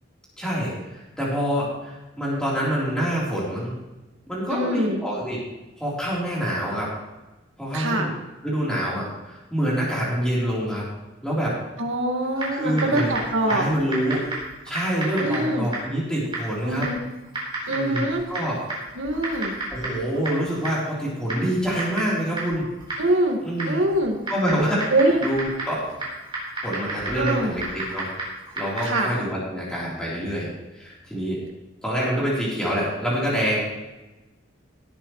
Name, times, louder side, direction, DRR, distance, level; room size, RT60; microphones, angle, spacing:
voice 1, 0.4-3.7 4.3-5.4 5.8-6.9 7.6-8.1 8.4-10.8 11.2-11.6 12.5-13.1 13.5-14.3 14.7-16.9 17.7-18.6 19.7-22.7 23.4-23.8 24.3-24.9 25.2-25.9 26.6-28.1 28.6-30.5 30.7-31.4 31.8-33.6, equal, 5° left, -7 dB, 3.7 m, -26 dB
voice 2, 4.5-5.0 7.7-8.1 11.8-13.7 15.2-15.7 16.6-17.0 17.7-18.2 19.0-19.6 23.0-23.4 23.7-24.2 24.9-25.3 27.2-27.5 28.8-29.1, right 1 dB, 80° right, 2 dB, 1.9 m, -23 dB
Typing, 12.3-29.2, right 2 dB, 25° right, 4.1 m, -33 dB
17.5 x 9.1 x 3.2 m, 1.1 s
head